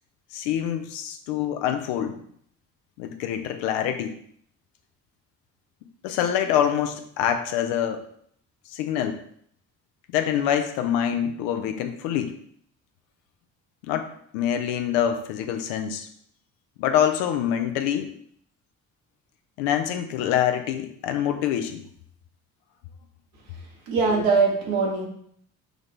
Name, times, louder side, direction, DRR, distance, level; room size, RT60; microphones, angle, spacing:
voice 1, 0.3-2.2 3.0-4.2 6.0-8.1 8.7-9.2 10.1-12.4 13.8-14.1 14.3-16.1 16.8-18.1 19.6-21.9, left 9 dB, 75° left, 7 dB, 0.6 m, -25 dB
voice 2, 23.9-25.1, right 4 dB, 80° right, -1 dB, 1.2 m, -21 dB
6.3 x 2.5 x 3.2 m, 0.65 s
hypercardioid pair, 50°, 41 cm